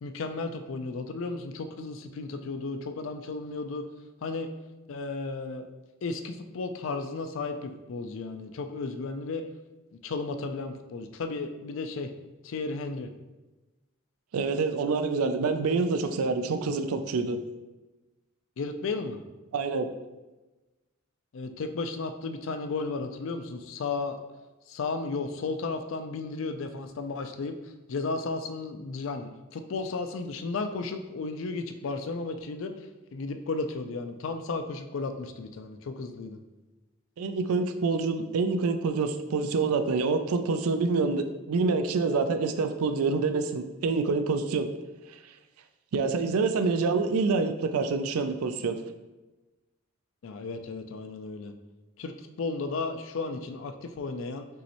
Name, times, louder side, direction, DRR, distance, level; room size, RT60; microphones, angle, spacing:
voice 1, 0.0-3.8 4.2-4.5 4.9-5.7 6.0-9.4 10.0-12.1 12.4-13.1 18.6-19.2 21.3-24.2 24.7-32.7 33.1-36.4 46.6-46.7 50.2-51.5 52.0-54.5, left 3 dB, 65° left, 8 dB, 0.4 m, -34 dB
voice 2, 14.3-17.4 19.5-19.9 37.2-44.7 45.9-48.8, right 4 dB, 85° right, 8 dB, 0.4 m, -26 dB
5.4 x 3.1 x 2.9 m, 1.1 s
head